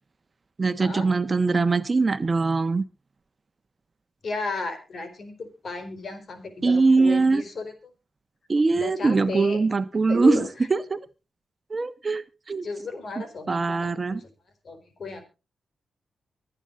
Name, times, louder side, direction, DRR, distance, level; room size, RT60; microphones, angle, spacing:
voice 1, 0.6-2.8 6.6-7.4 8.5-11.0 11.7-12.6 13.5-14.2, right 3 dB, 40° right, 1.1 m, -22 dB
voice 2, 4.2-7.7 8.7-9.6 10.1-10.5 12.6-14.3 14.6-15.2, left 3 dB, 60° left, 4.4 m, -34 dB
24.0 x 9.1 x 2.6 m
cardioid pair, 55°, 0 cm